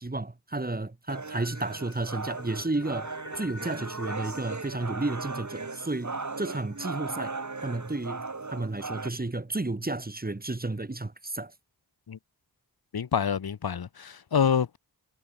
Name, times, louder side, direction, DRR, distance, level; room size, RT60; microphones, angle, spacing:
voice 1, 0.0-7.4 7.6-11.5, right 2 dB, 25° right, 1.5 m, -32 dB
sound 1, 1.1-9.1, right 3 dB, 45° right, 2.3 m, -37 dB
sound 2, 1.4-7.5, left 2 dB, 30° left, 7.4 m, -48 dB
voice 2, 12.9-14.8, left 7 dB, 70° left, 0.9 m, -27 dB
cardioid pair, 40°, 38 cm